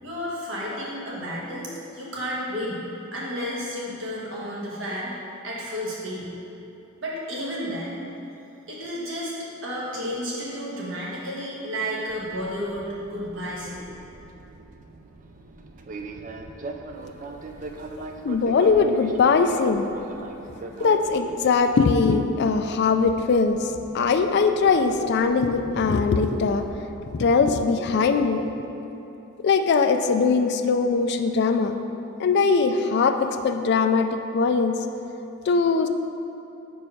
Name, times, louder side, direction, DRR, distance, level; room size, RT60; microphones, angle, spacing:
voice 1, 0.0-5.1 5.4-6.3 7.0-8.0 8.7-9.3 9.6-13.9, equal, 60° right, -5 dB, 1.5 m, -32 dB
Fixed-wing aircraft airplane, 12.1-27.5, right 3 dB, 35° right, 0.3 m, -41 dB
voice 2, 18.2-19.9 20.8-26.7 27.1-28.4 29.4-31.7 32.2-34.8 35.5-35.9, left 4 dB, 50° left, 7 dB, 0.3 m, -21 dB
5.2 x 4.6 x 5.5 m, 3.0 s
head